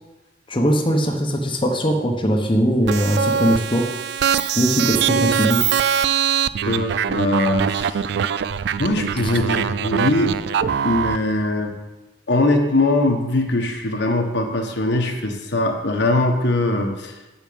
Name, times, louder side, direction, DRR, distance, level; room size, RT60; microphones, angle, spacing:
voice 1, 0.5-3.9 4.6-5.7, equal, 25° left, 1 dB, 1.0 m, -20 dB
sound 1, 2.9-11.2, right 8 dB, 60° right, 0.3 m, -22 dB
voice 2, 6.6-8.0 8.8-10.3 10.8-11.7 12.3-17.1, left 2 dB, 65° left, 3 dB, 1.2 m, -21 dB
7.1 x 6.4 x 7.9 m, 1.1 s
head